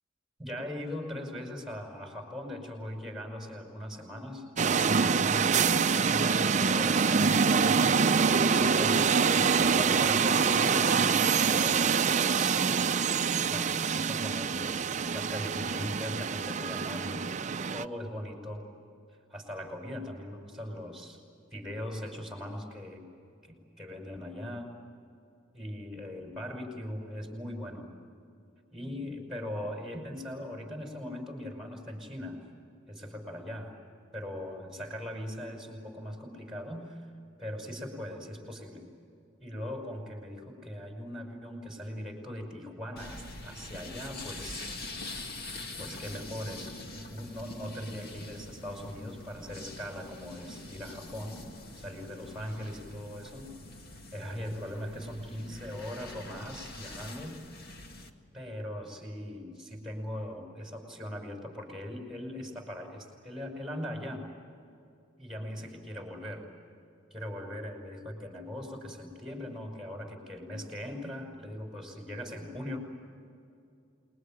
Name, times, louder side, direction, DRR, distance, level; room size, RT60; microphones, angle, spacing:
voice 1, 0.4-4.5 4.9-5.9 6.8-12.8 13.5-17.3 17.7-18.6 19.3-21.2 21.5-23.0 23.4-24.7 25.5-27.9 28.7-32.4 32.9-33.8 34.1-37.1 37.4-38.9 39.4-45.1 45.8-51.4 51.8-53.5 54.1-57.4 58.3-64.3 65.2-66.5 67.1-72.8, left 1 dB, ahead, 2 dB, 5.7 m, -40 dB
sound 1, 4.6-17.9, right 5 dB, 40° right, 0.6 m, -25 dB
sound 2, 43.0-58.1, left 2 dB, 55° left, 2.1 m, -44 dB
28.5 x 21.5 x 9.0 m, 2.5 s
head